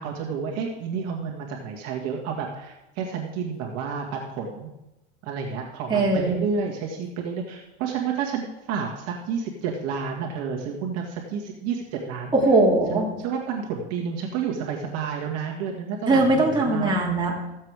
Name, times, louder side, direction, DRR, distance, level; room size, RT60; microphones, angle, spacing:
voice 1, 0.0-4.7 5.2-12.3 13.2-17.0, right 6 dB, 50° right, 0 dB, 1.8 m, -30 dB
voice 2, 5.9-6.4 12.3-13.1 16.1-17.4, right 2 dB, 15° right, -3 dB, 2.7 m, -20 dB
14.5 x 7.5 x 4.8 m, 0.96 s
supercardioid pair, 125°, 33 cm